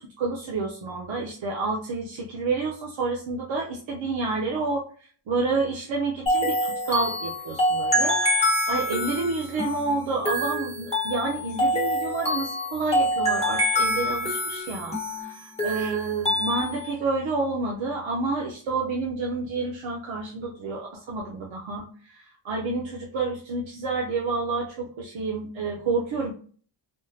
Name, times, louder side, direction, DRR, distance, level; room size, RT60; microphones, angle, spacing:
voice 1, 0.2-4.9 5.3-21.8 22.1-26.3, right 3 dB, 85° right, -1 dB, 0.7 m, -29 dB
sound 1, 6.3-16.9, left 1 dB, 15° left, 0.9 m, -26 dB
3.5 x 2.0 x 2.7 m, 0.43 s
wide cardioid pair, 180°, 45 cm